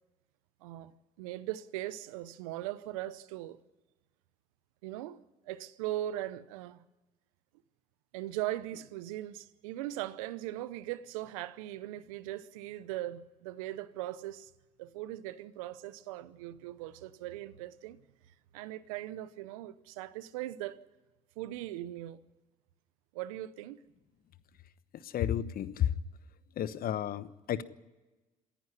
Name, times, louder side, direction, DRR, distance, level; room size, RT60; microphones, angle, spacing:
voice 1, 0.6-0.9 1.2-3.6 4.8-5.2 5.5-6.8 8.1-14.5 14.8-18.0 18.5-20.8 21.4-22.2 23.1-23.8, right 14 dB, 85° right, 0.8 m, -39 dB
voice 2, 25.0-25.9 26.6-27.6, left 10 dB, 60° left, 1.1 m, -32 dB
27.0 x 10.5 x 9.9 m
hypercardioid pair, 60°, 17 cm